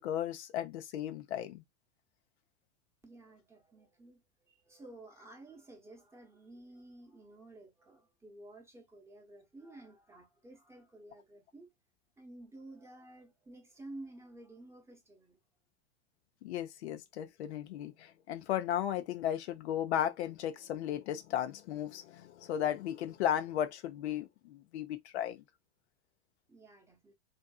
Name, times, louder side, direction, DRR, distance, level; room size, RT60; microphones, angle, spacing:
voice 1, 0.0-1.6 16.4-25.4, left 10 dB, 70° left, 0.6 m, -35 dB
voice 2, 3.0-11.7 12.2-15.4 26.5-27.1, right 2 dB, 10° right, 0.8 m, -53 dB
2.6 x 2.6 x 2.3 m
hypercardioid pair, 105°, 35 cm